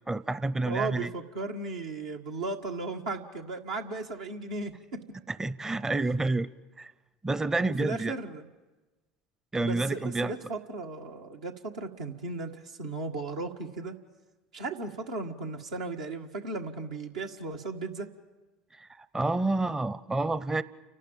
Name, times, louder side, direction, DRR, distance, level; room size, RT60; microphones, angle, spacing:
voice 1, 0.1-1.1 5.3-6.5 6.8-6.9 7.2-8.1 9.5-10.3 18.7-20.6, right 2 dB, 15° right, 15 dB, 0.6 m, -29 dB
voice 2, 0.6-5.0 7.8-8.5 9.6-13.9 14.5-18.1, right 3 dB, 85° right, 2 dB, 1.8 m, -36 dB
29.5 x 12.0 x 8.9 m, 1.2 s
hypercardioid pair, 75°, 4 cm